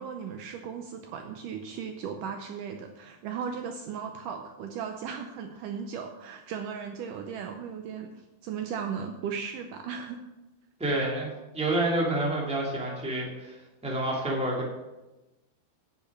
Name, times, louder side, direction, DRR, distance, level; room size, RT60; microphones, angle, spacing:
voice 1, 0.0-10.2, right 7 dB, 90° right, 5 dB, 1.8 m, -36 dB
voice 2, 10.8-13.6 13.8-14.7, right 1 dB, ahead, -3 dB, 1.6 m, -28 dB
10.0 x 6.7 x 7.3 m, 1.0 s
omnidirectional pair, 4.6 m